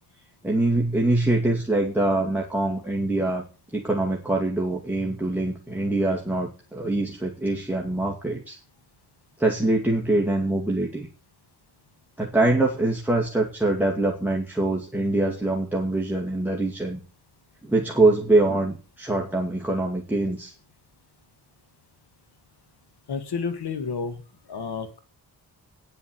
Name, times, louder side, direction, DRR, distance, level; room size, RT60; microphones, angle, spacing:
voice 1, 0.4-3.4 3.7-8.6 9.4-11.1 12.2-17.0 17.6-20.5, right 2 dB, 5° right, -2 dB, 2.2 m, -24 dB
voice 2, 23.1-24.2 24.5-25.0, left 5 dB, 80° left, 9 dB, 1.7 m, -30 dB
9.8 x 7.1 x 8.6 m, 0.37 s
wide cardioid pair, 95°, 39 cm